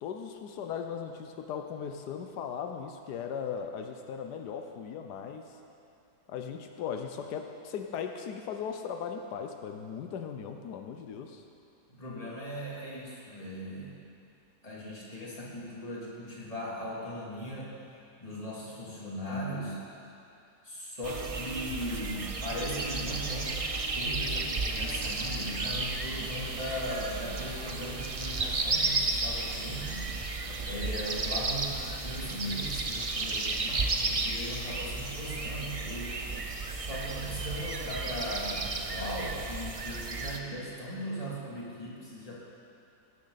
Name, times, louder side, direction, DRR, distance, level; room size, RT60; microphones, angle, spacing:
voice 1, 0.0-5.6 6.3-11.4, left 7 dB, 85° left, 5 dB, 1.3 m, -38 dB
voice 2, 11.9-14.0 14.6-17.8 18.2-19.8 20.6-23.7 23.9-30.1 30.7-36.2 36.7-42.4, equal, 20° left, -6 dB, 2.9 m, -38 dB
sound 1, 21.0-40.4, right 3 dB, 40° right, 0.5 m, -33 dB
17.5 x 12.5 x 4.0 m, 2.6 s
omnidirectional pair, 1.7 m